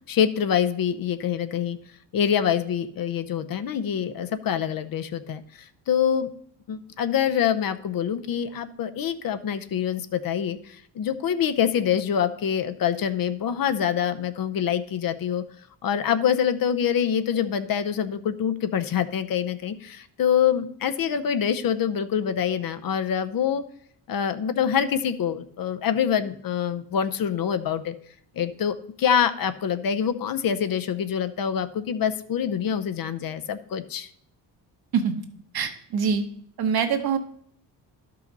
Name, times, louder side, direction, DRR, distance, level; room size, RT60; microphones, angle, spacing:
voice 1, 0.1-1.8 2.1-6.3 6.7-15.4 15.8-23.6 24.1-27.9 28.4-34.1, left 8 dB, 55° left, 10 dB, 0.7 m, -25 dB
voice 2, 35.5-36.2 36.6-37.2, right 6 dB, 60° right, 7 dB, 1.2 m, -24 dB
11.5 x 5.7 x 4.0 m, 0.63 s
cardioid pair, 85°, 43 cm